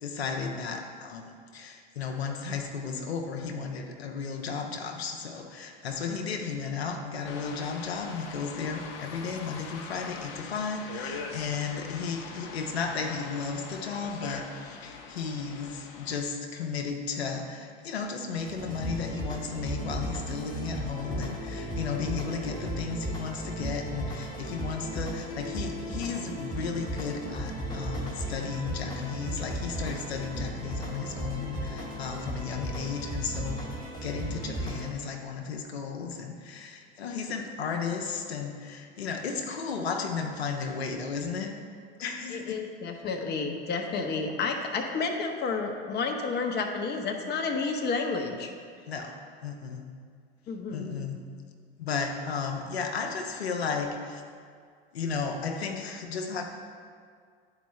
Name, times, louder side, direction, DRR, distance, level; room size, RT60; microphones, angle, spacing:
voice 1, 0.0-33.7 34.0-41.5 42.0-42.6 48.9-49.1 49.4-49.9 50.7-51.2 51.8-54.2 54.9-56.4, left 5 dB, 90° left, 3 dB, 0.8 m, -34 dB
sound 1, 7.2-16.2, left 5 dB, 65° left, 1.0 m, -42 dB
sound 2, 18.4-34.9, right 1 dB, 15° left, 1.7 m, -35 dB
voice 2, 42.3-48.5 50.5-51.0, left 4 dB, 35° left, 3 dB, 1.0 m, -31 dB
11.0 x 4.7 x 3.2 m, 2.1 s
hypercardioid pair, 90°, 31 cm